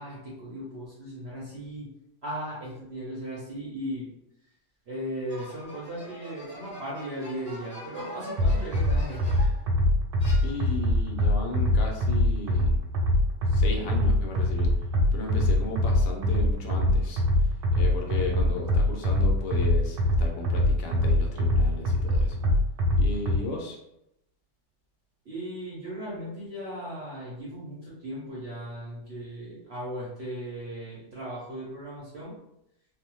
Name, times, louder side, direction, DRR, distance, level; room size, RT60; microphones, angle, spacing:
voice 1, 0.0-1.9 2.2-4.1 4.9-9.4 25.2-32.4, equal, 60° right, -7 dB, 0.7 m, -37 dB
sound 1, 5.3-9.7 10.2-11.0, equal, 10° left, 0.9 m, -44 dB
sound 2, 8.4-23.4, left 1 dB, 80° right, 1.2 m, -23 dB
voice 2, 10.4-12.8 13.5-14.7 15.1-17.2 17.8-22.4 23.0-23.8, left 3 dB, 75° left, 1 dB, 1.2 m, -35 dB
3.1 x 2.0 x 2.9 m, 0.82 s
omnidirectional pair, 1.9 m